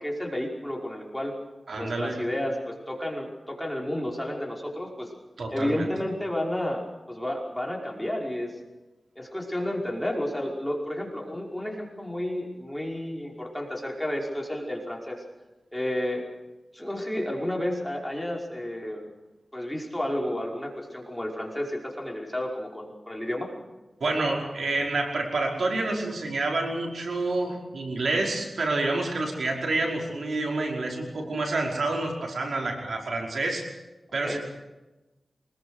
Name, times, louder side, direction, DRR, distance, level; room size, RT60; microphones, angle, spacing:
voice 1, 0.0-1.3 1.8-5.1 5.5-8.5 9.2-15.2 15.7-16.2 16.7-19.1 19.5-23.5 34.2-34.4, left 1 dB, 5° left, 0 dB, 5.4 m, -31 dB
voice 2, 1.7-2.2 5.4-5.9 24.0-33.7 34.1-34.4, right 2 dB, 75° right, 0 dB, 5.3 m, -28 dB
25.0 x 21.5 x 6.5 m, 1.1 s
wide cardioid pair, 95°, 0 cm